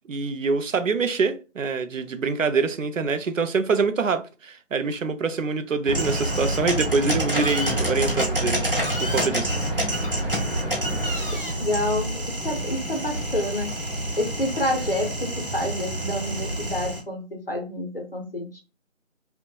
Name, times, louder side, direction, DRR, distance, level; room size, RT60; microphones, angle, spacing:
voice 1, 0.1-8.6 9.0-9.8 11.5-11.6, right 4 dB, 75° right, 0.5 m, -25 dB
sound 1, 5.9-17.0, right 1 dB, 45° right, 0.8 m, -27 dB
voice 2, 11.6-13.7 14.2-18.6, left 1 dB, 45° left, 0.6 m, -28 dB
2.6 x 2.1 x 2.3 m
figure-of-eight pair, 175°, 39 cm